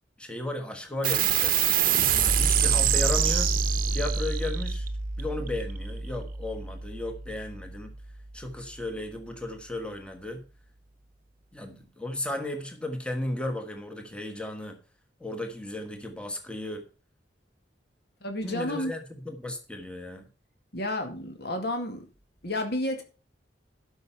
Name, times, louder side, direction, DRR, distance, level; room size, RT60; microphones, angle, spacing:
voice 1, 0.2-1.6 2.2-3.5 3.9-4.9 5.2-7.9 8.3-10.4 11.5-14.8 15.2-16.9 18.4-20.3, left 1 dB, 5° left, 1.3 m, -35 dB
sound 1, 1.0-7.9, right 7 dB, 50° right, 0.9 m, -26 dB
voice 2, 18.2-18.9 20.7-22.1 22.4-23.0, left 1 dB, 60° left, 2.2 m, -31 dB
12.0 x 5.6 x 5.5 m
head